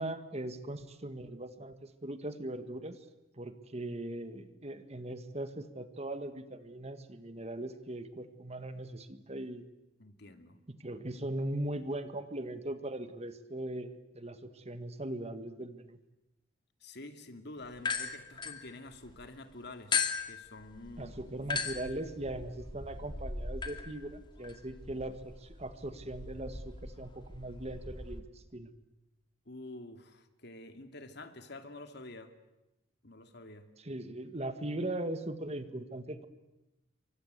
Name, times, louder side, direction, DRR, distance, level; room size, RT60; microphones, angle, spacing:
voice 1, 0.0-3.0 3.4-9.6 10.7-16.0 21.0-28.7 33.8-36.3, right 1 dB, 35° right, 10 dB, 1.8 m, -40 dB
voice 2, 10.0-10.6 16.8-20.0 20.2-21.2 29.5-32.3 33.0-33.7, left 2 dB, 60° left, 8 dB, 2.5 m, -48 dB
sound 1, 17.8-19.3 19.9-28.2, left 5 dB, 25° left, 2.4 m, -38 dB
28.5 x 24.5 x 8.2 m, 0.94 s
head